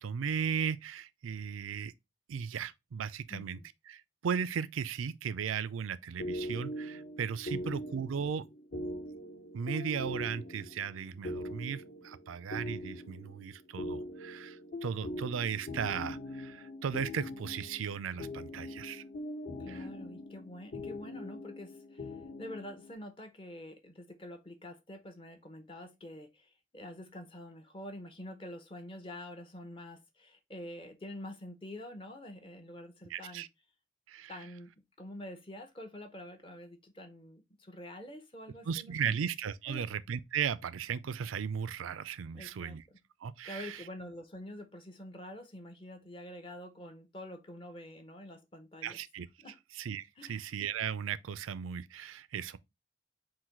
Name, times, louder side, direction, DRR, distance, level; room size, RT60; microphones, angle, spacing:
voice 1, 0.0-1.9 2.3-3.6 3.9-8.4 9.5-19.0 19.7-19.8 33.1-33.5 34.1-34.4 38.7-42.8 43.2-43.8 48.8-49.3 49.7-52.6, right 7 dB, 90° right, 0.4 m, -36 dB
voice 2, 3.3-3.7 7.5-7.7 19.6-33.5 34.3-34.7 35.0-39.2 39.7-39.9 42.3-43.0 43.4-49.0 49.4-49.6 50.2-50.5, left 1 dB, 25° left, 0.6 m, -47 dB
sound 1, 6.2-22.9, left 1 dB, 60° left, 1.0 m, -42 dB
3.9 x 2.6 x 4.4 m
head